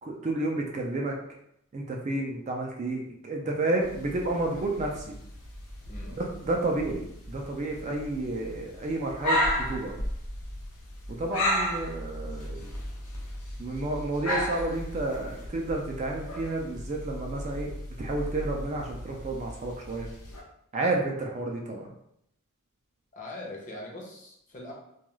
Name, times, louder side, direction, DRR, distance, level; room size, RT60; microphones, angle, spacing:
voice 1, 0.0-1.2 1.7-5.2 6.2-10.0 11.1-12.7 13.6-20.1 20.7-21.9, right 2 dB, 30° right, 0 dB, 0.3 m, -31 dB
sound 1, 3.8-20.4, left 1 dB, 85° left, 0.7 m, -35 dB
voice 2, 23.1-24.7, left 1 dB, 35° left, -2 dB, 0.6 m, -42 dB
2.3 x 2.3 x 3.0 m, 0.75 s
head